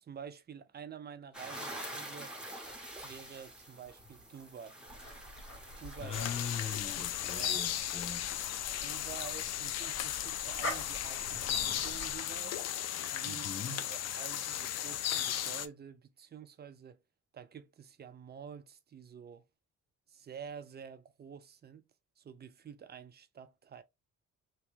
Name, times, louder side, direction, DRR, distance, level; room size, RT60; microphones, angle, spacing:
voice 1, 0.0-2.4 3.0-4.8 5.8-6.2 6.7-7.1 7.3-7.6 8.8-12.6 13.1-13.5 13.8-17.0 17.3-19.5 20.1-21.8 22.2-23.8, right 7 dB, 35° right, 0.5 m, -49 dB
sound 1, 1.3-6.8, right 1 dB, 5° right, 1.0 m, -46 dB
sound 2, 4.9-12.2, left 1 dB, 45° left, 1.8 m, -46 dB
voice 2, 6.0-8.3 13.2-13.9, left 6 dB, 20° left, 1.2 m, -41 dB
sound 3, 6.1-15.7, left 11 dB, 60° left, 0.4 m, -36 dB
3.0 x 2.2 x 3.2 m
cardioid pair, 90°, 30 cm